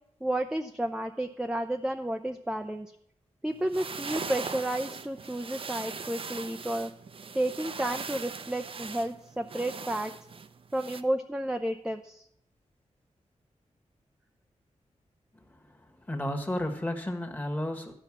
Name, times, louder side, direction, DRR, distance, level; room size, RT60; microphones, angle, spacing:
voice 1, 0.2-2.9 3.4-6.9 7.3-10.1 10.7-12.3, right 1 dB, 5° right, 5 dB, 0.5 m, -31 dB
sound 1, 3.5-11.0, right 5 dB, 50° right, 0.6 m, -40 dB
voice 2, 15.3-17.9, left 1 dB, 15° left, 3 dB, 1.4 m, -33 dB
12.5 x 5.6 x 7.2 m, 0.72 s
wide cardioid pair, 115°, 12 cm